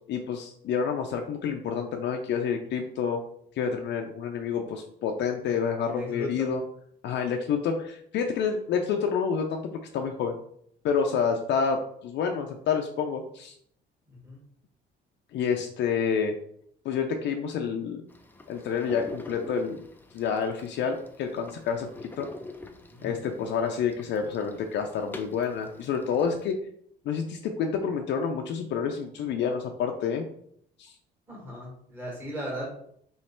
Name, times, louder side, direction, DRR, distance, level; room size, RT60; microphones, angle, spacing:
voice 1, 0.1-3.2 3.6-6.6 7.0-9.6 9.9-10.4 10.8-13.5 15.3-16.3 16.8-18.0 18.5-19.8 20.1-21.9 22.2-22.3 23.0-26.6 27.1-30.2 30.8-30.9, left 6 dB, 65° left, 3 dB, 0.5 m, -28 dB
voice 2, 5.8-6.5 14.1-14.4 22.9-23.1 31.3-32.8, equal, 10° right, -4 dB, 1.8 m, -37 dB
sound 1, 18.1-26.5, left 2 dB, 10° left, 0.4 m, -45 dB
3.2 x 3.1 x 4.3 m, 0.67 s
cardioid pair, 120°, 20 cm